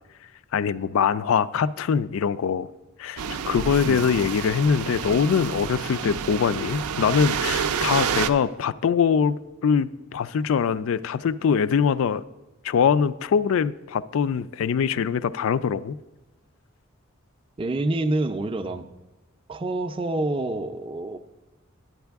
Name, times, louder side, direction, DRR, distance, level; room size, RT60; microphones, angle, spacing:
voice 1, 0.5-2.7 3.0-12.2 12.6-16.0, left 6 dB, 65° left, 15 dB, 0.3 m, -23 dB
sound 1, 3.2-8.3, right 7 dB, 85° right, 0.4 m, -29 dB
voice 2, 17.6-18.9 19.5-21.2, right 2 dB, 25° right, 8 dB, 0.4 m, -27 dB
10.5 x 8.9 x 3.5 m, 1.1 s
head